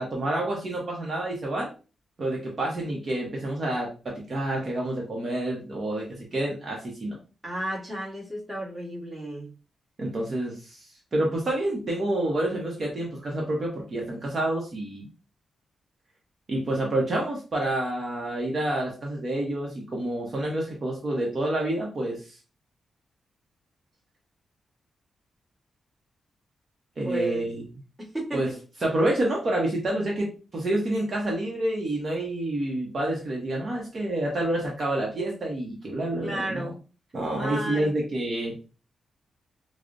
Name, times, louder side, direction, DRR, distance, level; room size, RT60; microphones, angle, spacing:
voice 1, 0.0-1.7 2.2-7.1 10.0-15.1 16.5-22.4 27.0-27.6 28.3-28.5 28.8-36.7 37.1-38.6, right 1 dB, 40° right, -2 dB, 0.8 m, -28 dB
voice 2, 7.4-9.5 27.0-27.5 28.0-28.6 36.2-36.8 37.4-37.9, right 1 dB, 10° right, -4 dB, 1.3 m, -32 dB
4.8 x 2.0 x 2.5 m, 0.34 s
wide cardioid pair, 125°, 0 cm